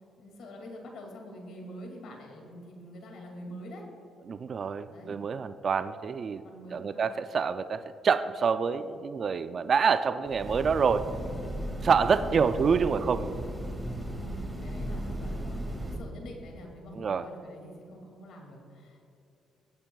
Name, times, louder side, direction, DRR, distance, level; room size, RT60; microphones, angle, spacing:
voice 1, 0.2-3.8 4.8-5.2 6.4-7.2 11.1-11.4 11.8-12.1 14.2-19.0, equal, 75° left, 1 dB, 2.3 m, -46 dB
voice 2, 4.3-6.4 6.7-11.1 11.8-13.3 16.9-17.3, right 6 dB, 50° right, 11 dB, 0.3 m, -27 dB
Train, 10.2-16.0, right 1 dB, 15° right, 2.1 m, -36 dB
16.5 x 8.7 x 2.3 m, 2.7 s
cardioid pair, 90°, 0 cm